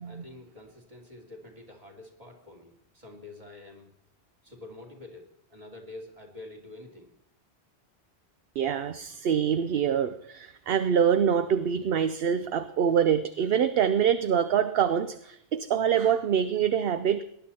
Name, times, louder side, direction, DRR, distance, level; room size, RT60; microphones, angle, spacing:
voice 1, 0.0-3.9 4.4-7.1, left 2 dB, 35° right, 0 dB, 3.0 m, -47 dB
voice 2, 8.6-17.2, right 8 dB, 65° right, 11 dB, 0.9 m, -25 dB
19.0 x 11.0 x 4.3 m, 0.74 s
omnidirectional pair, 1.1 m